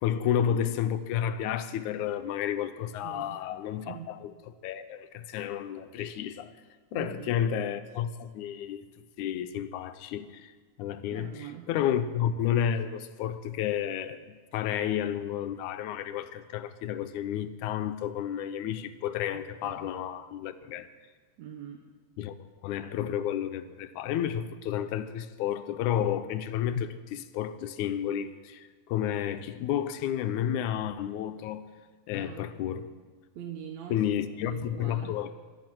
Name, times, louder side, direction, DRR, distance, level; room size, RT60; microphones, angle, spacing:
voice 1, 0.0-4.0 4.6-6.5 6.9-8.8 9.2-10.5 10.8-11.3 11.7-20.9 22.2-22.4 22.6-31.6 32.1-32.9 33.9-35.3, left 9 dB, 90° left, 2.2 m, -31 dB
voice 2, 3.0-3.6 3.8-4.1 6.9-7.4 11.1-11.7 19.3-19.9 21.4-21.8 32.1-32.5 33.3-34.0 34.4-35.2, right 10 dB, 70° right, 2.1 m, -43 dB
23.5 x 8.9 x 6.0 m
omnidirectional pair, 3.4 m